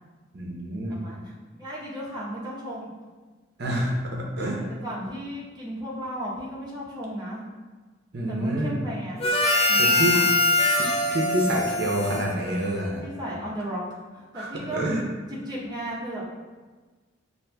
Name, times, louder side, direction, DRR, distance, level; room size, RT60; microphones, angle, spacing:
voice 1, 0.3-1.0 3.6-4.6 8.1-8.8 9.8-10.1 10.8-13.1 14.3-15.0, right 1 dB, 55° right, -2 dB, 0.6 m, -28 dB
voice 2, 0.9-1.3 1.6-2.9 4.5-7.4 8.3-9.2 9.7-10.6 13.0-14.8 15.3-16.3, equal, 20° right, -6 dB, 0.8 m, -35 dB
Harmonica, 9.2-13.0, left 2 dB, 30° left, 0.4 m, -23 dB
6.3 x 2.5 x 2.2 m, 1.4 s
head